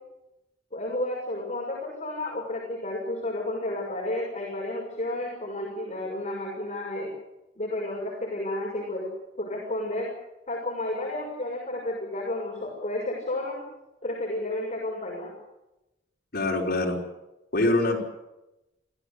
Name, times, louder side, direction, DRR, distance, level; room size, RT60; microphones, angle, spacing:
voice 1, 0.7-7.1 7.6-9.1 9.4-10.1 10.5-13.6 14.0-15.4, left 1 dB, 40° left, -3 dB, 6.6 m, -31 dB
voice 2, 16.3-17.0 17.5-18.0, left 2 dB, 55° left, 0 dB, 4.9 m, -24 dB
26.0 x 16.5 x 8.6 m, 0.95 s
head